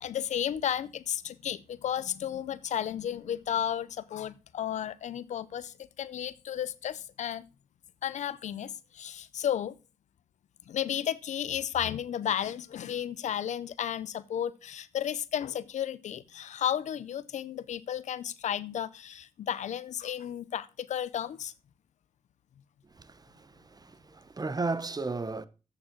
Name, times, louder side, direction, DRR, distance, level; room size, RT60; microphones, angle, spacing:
voice 1, 0.0-7.4 8.0-9.8 10.7-21.5, left 10 dB, 85° left, 0.5 m, -33 dB
voice 2, 22.8-25.5, right 3 dB, 35° right, 0.8 m, -35 dB
7.5 x 7.0 x 5.7 m
cardioid pair, 50°, 12 cm